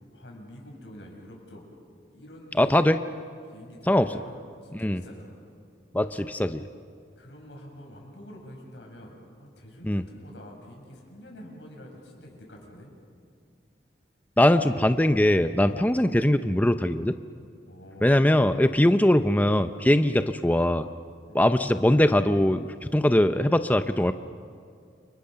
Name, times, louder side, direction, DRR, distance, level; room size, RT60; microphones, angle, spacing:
voice 1, 0.1-1.6 2.1-2.7 3.4-5.4 7.2-12.9 17.7-18.1 21.3-21.4, equal, 85° left, 0 dB, 7.6 m, -47 dB
voice 2, 2.6-3.0 3.9-4.1 4.8-5.0 5.9-6.6 9.8-10.0 14.4-17.2 18.0-20.9 21.3-24.1, left 1 dB, 10° left, 9 dB, 0.6 m, -21 dB
30.0 x 29.5 x 6.8 m, 2.2 s
head